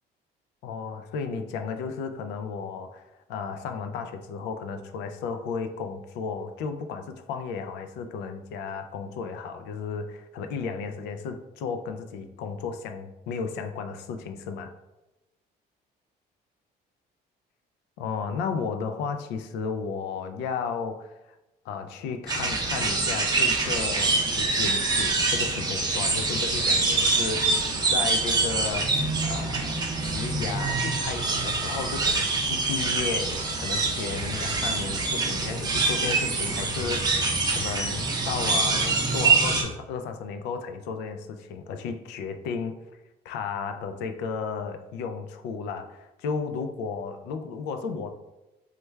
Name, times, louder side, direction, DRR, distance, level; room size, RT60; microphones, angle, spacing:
voice 1, 0.6-14.7 18.0-21.3 21.6-29.7 30.0-42.7 43.2-48.1, left 5 dB, 90° left, 8 dB, 0.4 m, -34 dB
sound 1, 22.3-39.6, right 3 dB, 25° right, 0.6 m, -25 dB
3.1 x 2.3 x 3.2 m, 0.99 s
cardioid pair, 110°, 17 cm